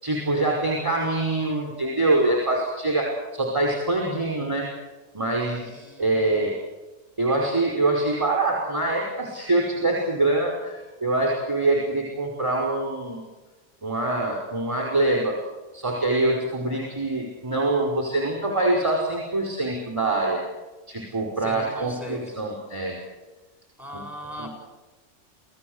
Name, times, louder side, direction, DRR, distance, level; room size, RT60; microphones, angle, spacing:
voice 1, 0.0-4.7 5.1-6.6 7.2-13.2 13.8-15.3 15.7-20.4 20.9-23.0 23.9-24.0 24.4-24.5, right 2 dB, 15° right, -1 dB, 5.5 m, -24 dB
voice 2, 5.5-6.4 16.4-17.0 21.4-22.3 23.8-24.5, equal, ahead, 2 dB, 7.6 m, -40 dB
28.0 x 17.0 x 8.3 m, 1.2 s
omnidirectional pair, 1.3 m